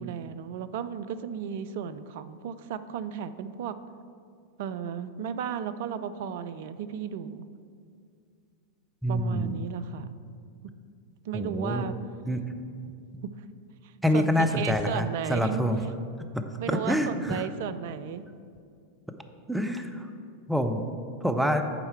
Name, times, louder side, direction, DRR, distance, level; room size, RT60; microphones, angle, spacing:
voice 1, 0.0-3.8 4.6-7.5 9.1-10.2 11.3-12.0 13.8-15.6 16.6-18.2, right 8 dB, 50° right, 13 dB, 0.4 m, -34 dB
voice 2, 9.0-9.6 11.3-11.9 12.3-12.4 14.0-15.8 16.3-17.5 19.5-20.1 20.5-20.8 21.2-21.6, equal, 5° right, 6 dB, 0.5 m, -26 dB
10.5 x 4.5 x 4.4 m, 2.3 s
figure-of-eight pair, 90°, 0 cm